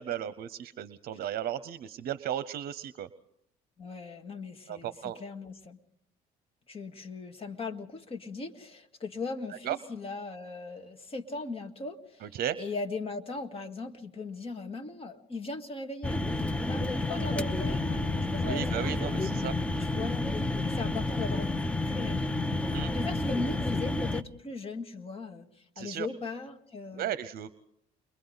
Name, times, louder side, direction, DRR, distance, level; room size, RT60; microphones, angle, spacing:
voice 1, 0.0-3.1 4.7-5.2 9.6-9.8 12.2-12.6 18.4-19.6 22.7-22.9 25.8-26.1 26.9-27.5, right 10 dB, 65° right, 14 dB, 0.8 m, -35 dB
voice 2, 3.8-5.8 6.7-18.8 19.8-22.6 22.9-27.1, left 3 dB, 35° left, 5 dB, 2.0 m, -39 dB
sound 1, 16.0-24.2, left 2 dB, 5° left, 0.7 m, -30 dB
29.5 x 23.0 x 4.0 m, 0.75 s
cardioid pair, 110°, 17 cm